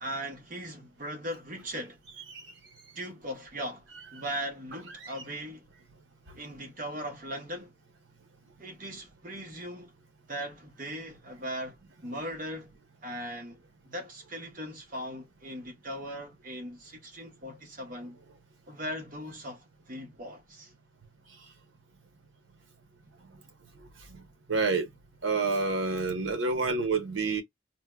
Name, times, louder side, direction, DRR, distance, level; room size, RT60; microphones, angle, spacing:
voice 1, 0.0-2.0 2.9-3.8 4.1-5.6 6.3-7.7 8.6-9.9 10.3-12.7 13.0-18.2 18.7-20.7, equal, 45° right, 1.0 m, -39 dB
voice 2, 24.5-24.9 25.2-27.4, right 3 dB, 90° right, 0.8 m, -28 dB
4.3 x 2.1 x 2.2 m
head